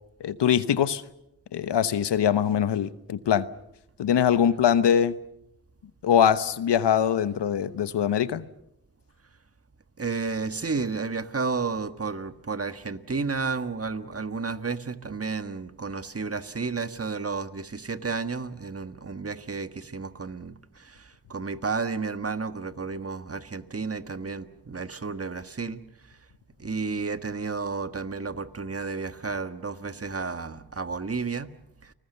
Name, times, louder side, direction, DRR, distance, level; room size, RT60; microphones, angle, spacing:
voice 1, 0.2-1.0 1.5-3.5 4.0-5.2 6.0-8.5, left 9 dB, 80° left, 1.1 m, -23 dB
voice 2, 10.0-25.8 26.6-31.5 31.8-31.9, right 4 dB, 35° right, 1.6 m, -32 dB
30.0 x 20.5 x 6.8 m
cardioid pair, 50°, 41 cm